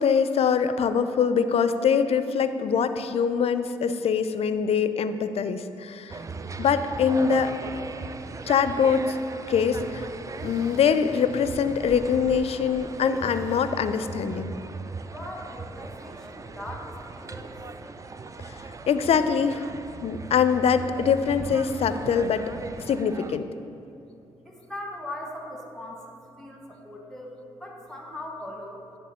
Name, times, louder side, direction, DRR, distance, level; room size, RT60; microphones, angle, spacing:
voice 1, 0.0-6.2 6.6-7.5 8.5-9.2 9.5-10.1 10.4-14.6 18.4-18.6 18.9-19.7 20.0-22.4 22.9-23.5, left 6 dB, 55° left, 11 dB, 0.4 m, -23 dB
sound 1, 6.1-23.4, right 4 dB, 25° right, 0.4 m, -38 dB
sound 2, 10.3-12.8 13.1-13.7, right 2 dB, 80° right, 1.4 m, -47 dB
voice 2, 14.6-18.2 23.8-23.9 24.4-28.8, left 1 dB, 5° left, 0 dB, 1.3 m, -40 dB
10.0 x 3.4 x 4.3 m, 2.6 s
hypercardioid pair, 45°, 12 cm